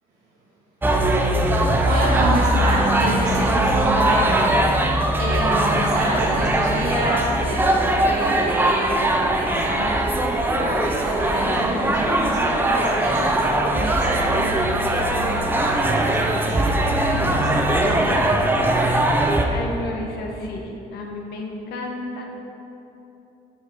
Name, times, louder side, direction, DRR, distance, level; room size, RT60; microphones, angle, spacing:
sound 1, 0.8-19.5, right 1 dB, 10° right, 0.6 m, -20 dB
voice 1, 1.3-18.3, right 2 dB, 90° right, -9 dB, 1.5 m, -29 dB
voice 2, 19.5-22.3, left 2 dB, 75° left, 0 dB, 1.1 m, -32 dB
6.1 x 5.0 x 5.4 m, 3.0 s
cardioid pair, 110°, 17 cm